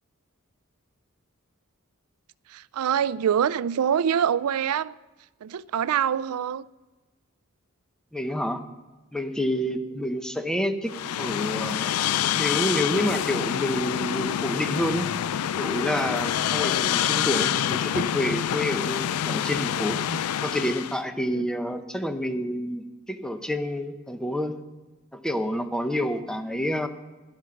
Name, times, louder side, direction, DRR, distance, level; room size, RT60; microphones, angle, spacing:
voice 1, 2.5-5.0 5.4-6.6 16.5-16.6 21.3-21.5, right 8 dB, 85° right, 0.4 m, -25 dB
voice 2, 8.1-8.6 9.1-11.9 12.3-15.1 15.6-24.6 25.1-26.9, equal, 5° left, 0.7 m, -28 dB
sound 1, 10.9-21.0, left 10 dB, 85° left, 0.4 m, -27 dB
12.5 x 11.0 x 5.8 m
head